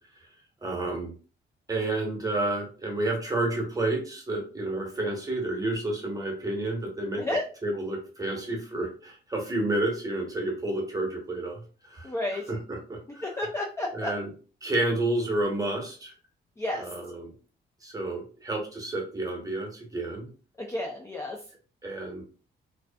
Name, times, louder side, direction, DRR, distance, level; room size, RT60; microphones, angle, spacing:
voice 1, 0.6-1.1 1.7-7.2 7.6-13.5 13.9-14.3 14.6-16.1 16.7-17.3 17.8-20.3 21.8-22.2, right 2 dB, 20° right, 0 dB, 0.9 m, -30 dB
voice 2, 12.0-12.4 13.2-14.1 16.6-16.9 20.6-21.4, left 1 dB, 15° left, -1 dB, 0.4 m, -31 dB
2.6 x 2.3 x 2.2 m, 0.38 s
cardioid pair, 90°, 20 cm